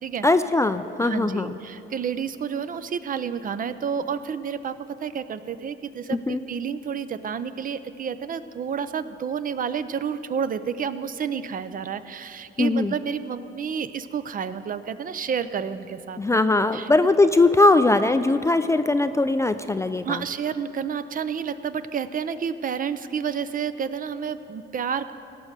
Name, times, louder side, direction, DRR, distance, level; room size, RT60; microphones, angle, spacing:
voice 1, 0.2-1.6 6.1-6.4 12.6-12.9 16.2-20.2, left 2 dB, 15° left, 9 dB, 0.4 m, -20 dB
voice 2, 1.0-16.4 16.7-16.9 20.0-25.1, right 7 dB, 45° right, 13 dB, 0.5 m, -30 dB
17.0 x 6.2 x 6.6 m, 3.0 s
cardioid pair, 90°, 20 cm